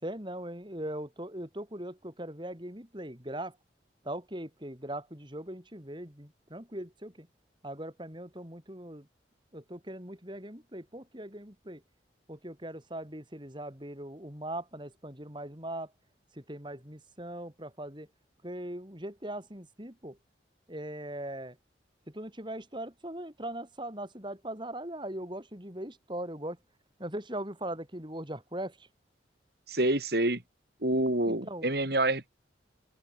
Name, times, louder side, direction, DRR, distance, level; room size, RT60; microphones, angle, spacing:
voice 1, 0.0-3.6 4.0-7.3 7.6-9.1 9.5-11.8 12.3-15.9 16.3-18.1 18.4-20.2 20.7-21.6 22.1-26.6 27.0-28.9 31.3-31.7, right 1 dB, 25° right, 5.1 m, -40 dB
voice 2, 29.7-30.4 30.8-32.3, right 1 dB, 55° right, 3.7 m, -27 dB
open air
head